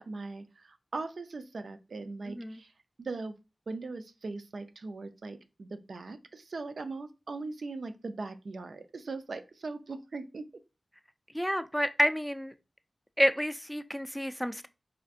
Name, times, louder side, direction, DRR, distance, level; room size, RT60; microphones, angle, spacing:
voice 1, 0.0-2.7 3.0-3.4 3.7-10.5, right 3 dB, 80° right, 0.3 m, -40 dB
voice 2, 11.3-12.5 13.2-14.7, equal, ahead, 0.3 m, -29 dB
4.2 x 2.5 x 2.4 m
cardioid pair, 50°, 0 cm